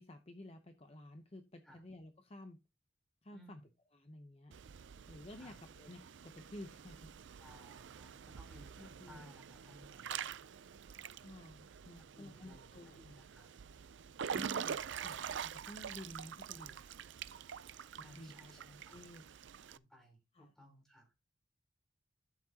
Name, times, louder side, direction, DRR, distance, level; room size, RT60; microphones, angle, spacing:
voice 1, 0.0-2.6 3.2-3.6 3.9-4.6 5.1-7.1 8.8-9.3 11.2-13.0 14.3-16.8 18.2-18.3 18.9-19.2 20.3-20.5, left 1 dB, 30° left, 6 dB, 0.8 m, -52 dB
voice 2, 3.3-3.7 5.4-5.6 7.4-10.2 12.1-13.5 15.5-15.7 18.0-19.0 19.7-21.1, left 1 dB, 5° left, 1 dB, 3.6 m, -60 dB
Water / Splash splatter / Drip, 4.5-19.8, right 7 dB, 65° right, 0.4 m, -46 dB
12.0 x 7.2 x 2.8 m, 0.25 s
head